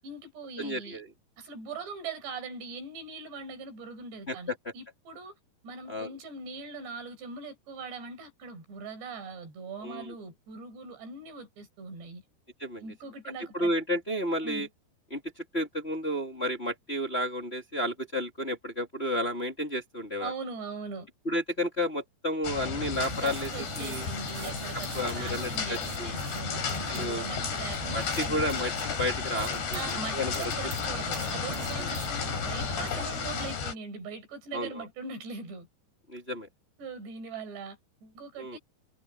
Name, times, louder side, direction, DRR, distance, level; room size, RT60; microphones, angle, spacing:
voice 1, 0.0-1.0 1.4-5.4 5.6-12.2 12.8-13.7 14.4-14.7 20.2-21.1 23.1-28.7 29.7-35.7 36.8-38.6, right 4 dB, 80° right, 7.5 m, -41 dB
voice 2, 0.6-1.1 4.3-4.5 5.9-6.1 9.8-10.1 12.6-12.8 13.5-14.7 15.1-20.3 21.2-24.1 24.9-26.1 26.9-27.2 27.9-30.4 34.5-34.8 36.1-36.5 38.4-38.6, equal, 20° left, 2.4 m, -32 dB
sound 1, 22.4-33.7, left 6 dB, 80° left, 6.5 m, -33 dB
sound 2, 22.9-33.6, right 6 dB, 60° right, 4.5 m, -42 dB
omnidirectional pair, 4.9 m